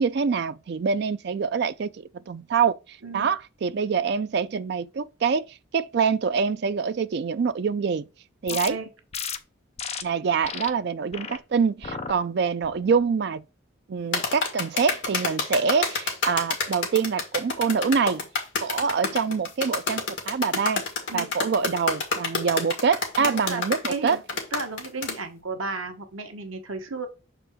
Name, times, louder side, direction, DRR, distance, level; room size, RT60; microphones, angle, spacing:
voice 1, 0.0-5.4 5.7-8.1 8.4-8.8 10.0-13.4 13.9-18.2 18.6-20.8 21.1-24.2, right 5 dB, 50° right, 0.3 m, -25 dB
voice 2, 3.0-3.3 8.5-8.9 21.1-21.3 23.2-24.2 24.5-27.1, right 3 dB, 80° right, 1.1 m, -34 dB
sound 1, 8.5-8.7 9.1-9.4 9.8-10.0 10.4-10.7 11.1-11.4 11.8-12.1 12.6-13.0, left 6 dB, 30° left, 0.5 m, -33 dB
sound 2, 14.1-25.2, left 4 dB, 70° left, 1.8 m, -28 dB
6.5 x 4.4 x 3.6 m
head